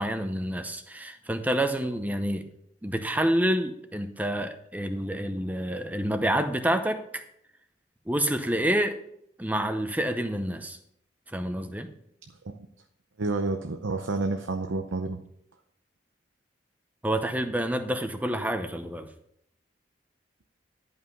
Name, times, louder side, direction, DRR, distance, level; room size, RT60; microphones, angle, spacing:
voice 1, 0.0-2.4 2.8-7.2 8.1-8.9 9.4-10.8 11.3-11.9 17.0-19.1, right 1 dB, 10° right, 7 dB, 0.7 m, -28 dB
voice 2, 13.2-15.2, right 3 dB, 85° right, 5 dB, 0.7 m, -29 dB
11.5 x 5.7 x 5.4 m, 0.73 s
head